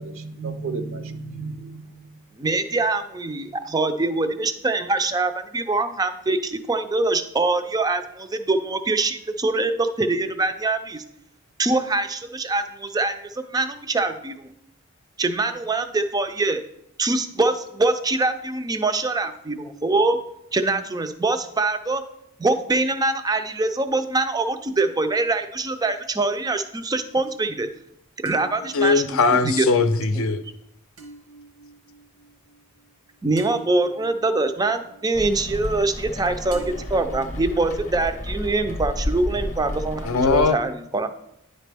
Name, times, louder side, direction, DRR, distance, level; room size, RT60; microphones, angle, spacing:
voice 1, 0.0-2.2, right 4 dB, 65° right, 0.6 m, -33 dB
voice 2, 2.4-11.0 11.6-14.5 15.2-16.6 17.0-20.2 20.5-22.1 22.4-27.7 28.2-29.0 29.4-29.7 33.2-41.1, right 2 dB, 15° right, 0.4 m, -24 dB
sound 1, 25.9-26.6 28.3-36.2 36.5-38.6, right 2 dB, 80° right, 1.1 m, -47 dB
voice 3, 28.7-30.4 40.0-40.6, left 4 dB, 65° left, 0.5 m, -20 dB
Rain, 35.1-40.5, left 1 dB, 35° left, 0.8 m, -31 dB
9.8 x 4.1 x 3.4 m
head